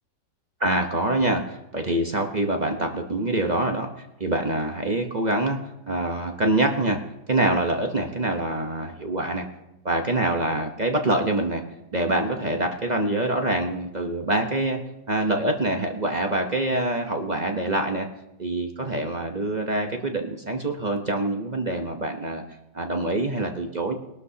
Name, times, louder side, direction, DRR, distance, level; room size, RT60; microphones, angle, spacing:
voice 1, 0.6-5.6 5.9-7.0 7.3-9.5 9.8-11.6 11.9-14.8 15.1-18.1 18.4-22.4 22.7-23.9, right 1 dB, 35° right, 3 dB, 0.7 m, -25 dB
21.0 x 12.0 x 2.8 m, 0.93 s
omnidirectional pair, 2.0 m